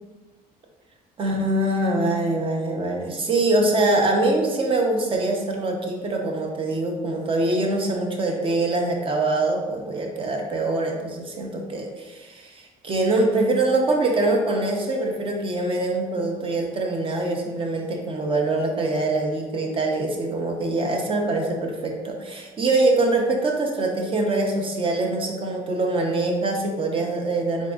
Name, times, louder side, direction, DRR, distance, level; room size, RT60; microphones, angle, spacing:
voice 1, 1.2-27.7, right 2 dB, 35° right, 2 dB, 0.6 m, -24 dB
3.6 x 3.6 x 2.5 m, 1.3 s
cardioid pair, 120°, 16 cm